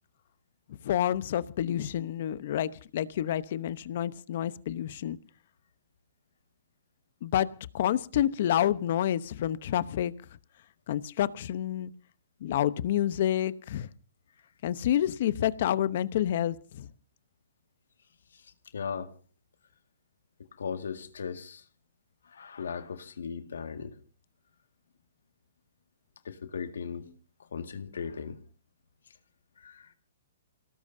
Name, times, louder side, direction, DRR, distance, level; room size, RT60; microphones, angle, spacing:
voice 1, 0.8-5.2 7.2-7.5 7.7-10.1 10.9-11.9 12.4-13.9 14.6-16.9, left 11 dB, 50° left, 0.9 m, -28 dB
voice 2, 18.3-19.1 20.6-21.6 22.2-24.0 26.2-27.1 27.4-28.4 29.6-29.9, left 6 dB, 85° left, 1.9 m, -38 dB
28.0 x 18.0 x 2.7 m
hypercardioid pair, 155°, 0 cm